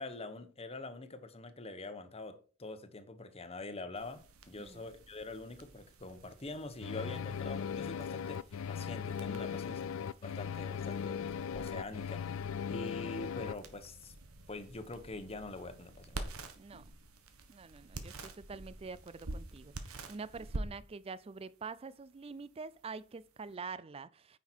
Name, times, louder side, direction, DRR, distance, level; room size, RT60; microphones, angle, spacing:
voice 1, 0.0-4.2 4.5-8.4 8.7-9.8 10.2-14.1 14.5-16.2, left 2 dB, 30° left, 1.1 m, -45 dB
sound 1, 3.9-23.5, right 2 dB, 80° right, 1.3 m, -49 dB
sound 2, 6.8-13.5, left 7 dB, 65° left, 0.4 m, -38 dB
voice 2, 17.5-24.4, right 4 dB, 25° right, 0.4 m, -46 dB
9.7 x 5.8 x 4.5 m
head